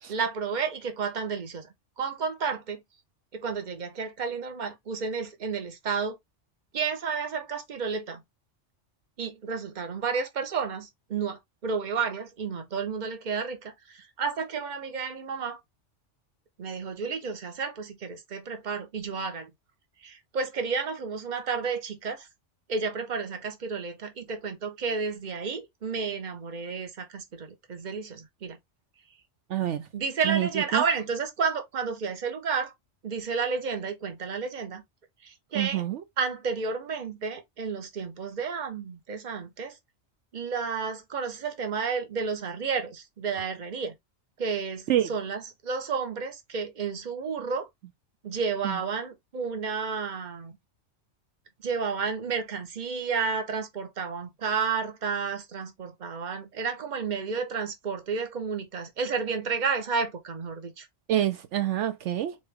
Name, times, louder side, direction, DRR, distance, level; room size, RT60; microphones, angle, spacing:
voice 1, 0.1-1.7 2.0-2.8 3.3-6.2 6.7-8.2 9.2-15.6 16.6-19.5 20.0-22.3 22.7-28.6 29.9-32.7 33.0-34.8 35.2-35.8 36.2-39.8 40.3-43.9 44.4-47.7 48.2-50.6 51.6-60.9, right 5 dB, 40° right, 1.0 m, -31 dB
voice 2, 29.5-29.9 30.2-30.8 35.5-36.0 44.9-45.1 48.6-48.8 61.1-62.4, right 12 dB, 75° right, 0.9 m, -27 dB
4.3 x 3.3 x 3.3 m
omnidirectional pair, 1.2 m